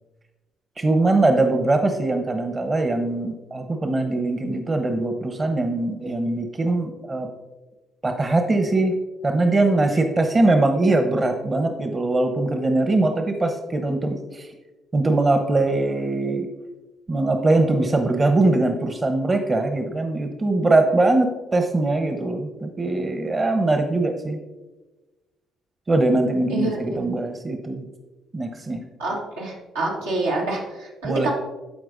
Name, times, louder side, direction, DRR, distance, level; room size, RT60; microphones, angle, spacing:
voice 1, 0.8-7.3 8.0-8.9 9.2-14.5 14.9-16.5 17.1-24.4 25.9-27.9 28.3-28.9 31.0-31.3, right 2 dB, 30° right, 6 dB, 0.9 m, -21 dB
voice 2, 26.5-27.0 29.0-31.3, right 2 dB, 90° right, -5 dB, 1.6 m, -27 dB
13.5 x 4.6 x 2.6 m, 1.1 s
hypercardioid pair, 50°, 0 cm